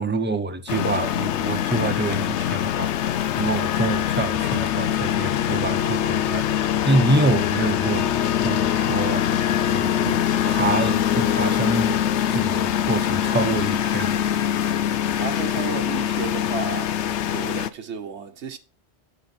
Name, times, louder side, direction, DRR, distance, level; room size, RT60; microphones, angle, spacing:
voice 1, 0.0-9.4 9.7-14.2 14.5-14.8, right 2 dB, 10° right, 0.7 m, -26 dB
sound 1, 0.7-17.7, left 10 dB, 85° left, 0.9 m, -23 dB
voice 2, 15.1-18.6, right 6 dB, 80° right, 1.3 m, -33 dB
8.4 x 7.3 x 4.3 m
omnidirectional pair, 1.1 m